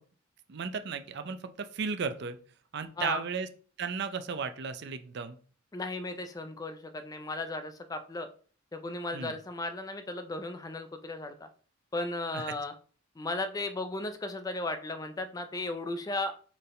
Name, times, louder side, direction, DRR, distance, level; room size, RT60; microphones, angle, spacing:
voice 1, 0.5-2.4 2.7-3.5 3.8-5.4 9.1-9.3 12.3-12.4, right 5 dB, 55° right, 10 dB, 0.5 m, -35 dB
voice 2, 5.7-8.3 8.7-11.5 11.9-12.7 13.2-16.4, left 2 dB, 15° left, 8 dB, 0.3 m, -35 dB
4.5 x 3.4 x 3.2 m, 0.42 s
head